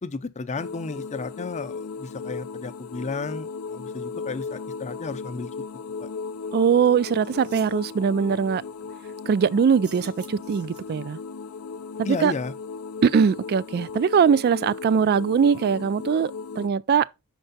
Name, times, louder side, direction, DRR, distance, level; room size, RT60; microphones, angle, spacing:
voice 1, 0.0-5.5 6.0-6.1 12.0-12.5, left 4 dB, 35° left, 0.5 m, -33 dB
sound 1, 0.6-16.7, left 5 dB, 85° left, 0.4 m, -36 dB
voice 2, 6.5-8.6 9.3-11.2 12.0-12.3 13.0-17.1, right 6 dB, 45° right, 0.3 m, -21 dB
sound 2, 6.8-6.9 7.2-7.8 9.7-11.1, right 6 dB, 90° right, 1.2 m, -48 dB
6.5 x 4.6 x 4.0 m
head